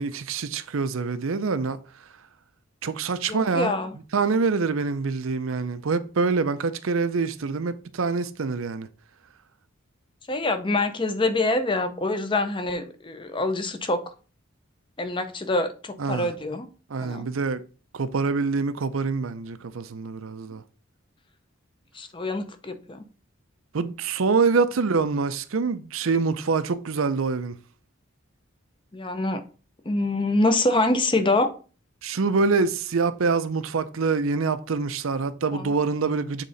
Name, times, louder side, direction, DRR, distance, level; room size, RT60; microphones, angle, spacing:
voice 1, 0.0-1.8 2.8-3.7 4.1-8.9 16.0-16.3 16.9-17.6 17.9-20.6 23.7-27.6 32.0-36.4, right 4 dB, 75° right, 0.6 m, -25 dB
voice 2, 3.3-3.9 10.3-14.0 15.0-16.7 17.0-17.3 21.9-23.0 28.9-29.4 29.9-31.5 35.5-35.7, left 2 dB, 25° left, 0.6 m, -25 dB
7.4 x 3.7 x 4.0 m
head